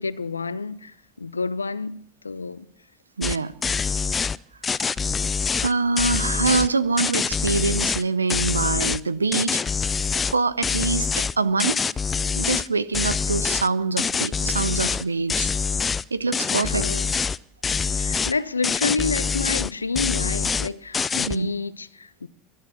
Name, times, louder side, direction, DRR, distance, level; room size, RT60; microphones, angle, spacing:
voice 1, 0.0-2.7 16.5-17.1 17.9-22.3, left 4 dB, 85° left, 0.5 m, -29 dB
sound 1, 3.2-3.4 3.6-4.4 4.6-6.7 7.0-8.0 8.3-9.0 9.3-10.3 10.6-12.7 12.9-13.7 14.0-15.0 15.3-16.0 16.3-17.4 17.6-18.3 18.6-19.7 20.0-20.7 20.9-21.4, left 5 dB, 25° left, 0.5 m, -25 dB
voice 2, 3.2-3.5 5.6-9.6 10.3-11.9 12.4-15.5 16.1-16.8 21.3-21.5, right 4 dB, 85° right, 0.6 m, -24 dB
23.5 x 9.4 x 6.1 m
figure-of-eight pair, 75°, 0 cm